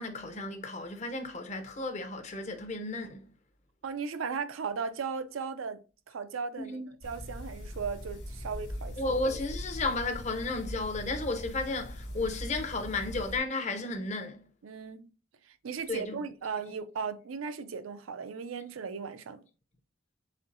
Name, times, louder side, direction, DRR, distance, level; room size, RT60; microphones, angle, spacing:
voice 1, 0.0-3.3 6.6-6.9 9.0-14.4 15.9-16.2, left 2 dB, 35° left, 0.6 m, -33 dB
voice 2, 3.8-6.8 7.0-9.0 14.6-15.1 15.5-19.4, right 5 dB, 80° right, 0.4 m, -37 dB
sound 1, 7.0-13.4, equal, 55° left, 1.3 m, -41 dB
4.3 x 3.7 x 2.5 m
head